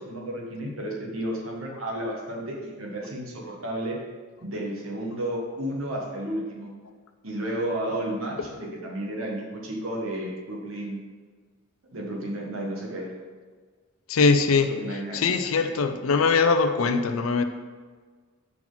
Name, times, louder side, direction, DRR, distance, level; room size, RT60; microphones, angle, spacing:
voice 1, 0.0-4.0 4.4-6.7 7.2-11.0 11.9-13.1 14.8-15.2, right 1 dB, 75° right, -2 dB, 1.5 m, -32 dB
voice 2, 14.1-14.7 15.1-17.4, left 4 dB, 75° left, 8 dB, 0.5 m, -21 dB
6.0 x 5.8 x 4.0 m, 1.5 s
head